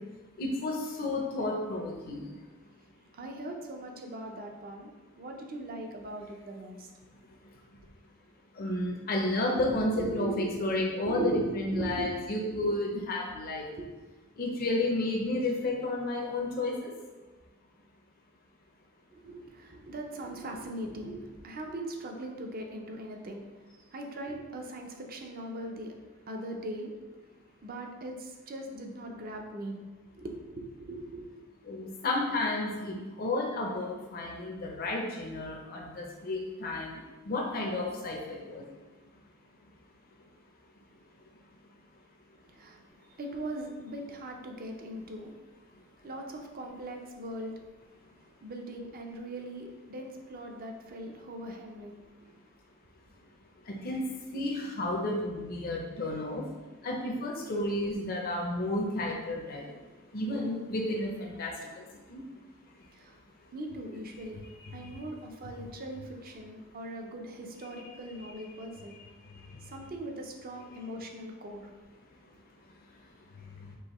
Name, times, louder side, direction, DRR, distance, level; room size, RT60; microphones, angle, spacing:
voice 1, 0.4-2.3 8.6-13.6 14.4-16.9 31.7-36.9 37.3-38.6 53.7-54.0 54.3-56.5 56.8-59.6 60.1-61.5 62.1-62.2 64.8-64.9, left 2 dB, 45° left, -1 dB, 0.6 m, -31 dB
voice 2, 3.1-4.9 5.2-6.9 9.6-9.7 9.9-10.7 11.0-12.7 13.8-13.9 19.1-23.4 23.9-25.9 26.3-26.9 27.6-29.8 30.1-31.3 42.5-42.8 43.1-45.3 46.0-47.6 48.4-52.0 62.9-63.1 63.5-64.4 64.7-69.0 69.6-71.7, right 1 dB, 45° right, 3 dB, 0.6 m, -40 dB
4.7 x 2.9 x 3.0 m, 1.2 s
head